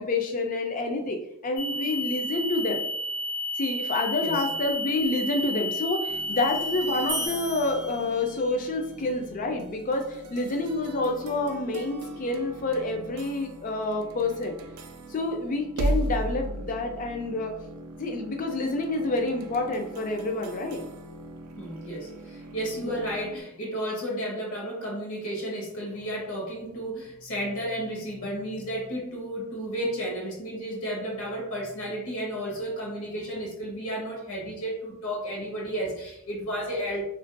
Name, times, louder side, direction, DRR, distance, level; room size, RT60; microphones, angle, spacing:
voice 1, 0.0-2.8 3.6-14.6 15.1-17.6 18.0-20.8 22.8-23.0, left 2 dB, 35° left, 4 dB, 0.3 m, -28 dB
sound 1, 1.6-7.3, left 1 dB, 90° left, 0.5 m, -31 dB
sound 2, 6.1-23.4, right 1 dB, 85° right, 0.3 m, -38 dB
sound 3, 7.1-8.7, right 1 dB, 25° right, 0.4 m, -36 dB
voice 2, 21.6-37.0, equal, 65° left, -3 dB, 0.8 m, -33 dB
2.5 x 2.2 x 2.5 m, 0.77 s
head